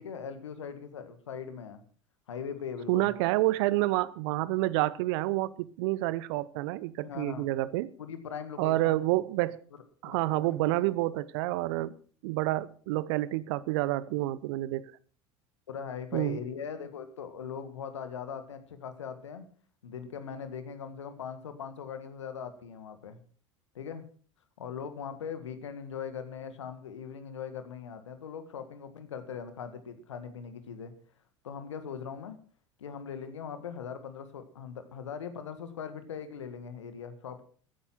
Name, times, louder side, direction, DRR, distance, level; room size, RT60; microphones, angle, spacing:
voice 1, 0.0-1.8 2.3-3.1 7.0-7.5 8.0-8.9 10.1-10.9 15.7-19.5 19.8-23.2 23.7-24.0 24.6-30.9 31.4-32.4 32.8-37.4, left 7 dB, 75° left, 1.9 m, -40 dB
voice 2, 2.9-7.9 8.6-9.6 10.0-11.9 12.2-14.9 16.1-16.4, right 17 dB, 60° right, 0.8 m, -28 dB
14.0 x 10.0 x 5.9 m
figure-of-eight pair, 75°, 15 cm